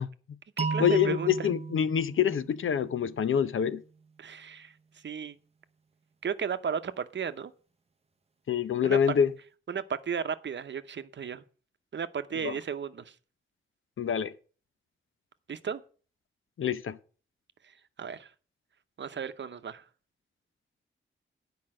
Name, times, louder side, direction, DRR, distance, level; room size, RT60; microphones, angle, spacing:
voice 1, 0.0-0.4 0.8-3.8 8.5-9.3 12.4-12.6 14.0-14.3 16.6-17.0, left 8 dB, 80° left, 0.7 m, -26 dB
sound 1, 0.6-3.5, right 4 dB, 30° right, 0.6 m, -35 dB
voice 2, 0.6-1.3 4.2-4.7 5.0-5.4 6.2-7.5 8.8-9.0 9.7-11.4 11.9-13.1 15.5-15.8 18.0-18.3 19.0-19.8, right 7 dB, 65° right, 0.8 m, -34 dB
9.6 x 5.2 x 7.5 m
wide cardioid pair, 110°, 20 cm